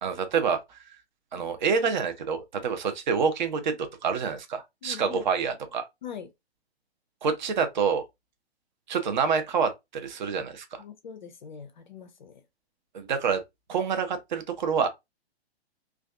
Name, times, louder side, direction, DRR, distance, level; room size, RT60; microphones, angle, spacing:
voice 1, 0.0-0.8 1.3-5.9 7.2-8.0 8.9-10.8 12.9-13.4 13.7-14.9, right 6 dB, 45° right, 0.6 m, -27 dB
voice 2, 4.8-5.2 6.0-6.3 10.8-12.4, left 8 dB, 45° left, 0.4 m, -42 dB
2.4 x 2.3 x 2.3 m
figure-of-eight pair, 120°, 32 cm